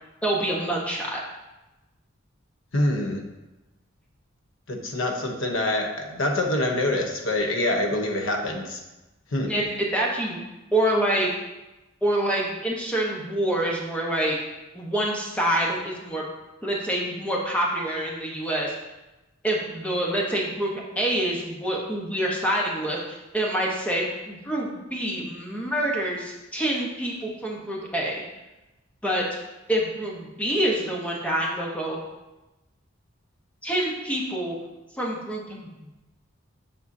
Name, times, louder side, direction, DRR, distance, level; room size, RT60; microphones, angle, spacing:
voice 1, 0.2-1.2 9.5-9.6 9.9-10.4 10.7-11.3 12.0-14.4 14.7-16.2 16.6-18.7 19.4-28.2 29.0-29.3 29.7-32.0 33.6-34.5 35.0-35.9, right 1 dB, 5° left, -3 dB, 1.0 m, -26 dB
voice 2, 2.7-3.2 4.7-8.8 9.3-9.5, left 1 dB, 65° left, 2 dB, 0.9 m, -25 dB
7.4 x 5.4 x 2.7 m, 1.0 s
head